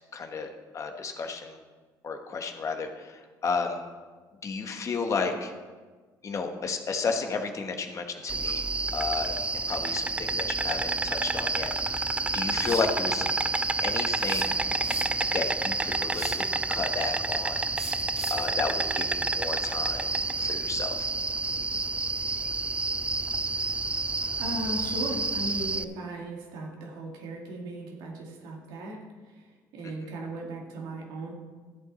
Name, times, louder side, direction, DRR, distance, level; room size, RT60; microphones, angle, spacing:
voice 1, 0.1-0.5 0.7-1.6 2.0-3.8 4.4-5.5 6.2-9.3 9.7-12.1 12.3-13.3 13.8-14.5 15.3-16.4 16.7-17.6 18.3-20.1 20.4-21.1 29.8-29.9, left 4 dB, 40° left, 5 dB, 1.3 m, -32 dB
Insect, 8.3-25.8, right 3 dB, 15° right, 0.4 m, -29 dB
sound 1, 12.6-12.9 14.2-15.3 16.1-16.5 17.8-18.5, left 1 dB, 5° left, 2.7 m, -42 dB
voice 2, 24.4-31.3, right 1 dB, 80° right, 0 dB, 2.2 m, -37 dB
13.5 x 8.2 x 4.2 m, 1.4 s
cardioid pair, 90°, 8 cm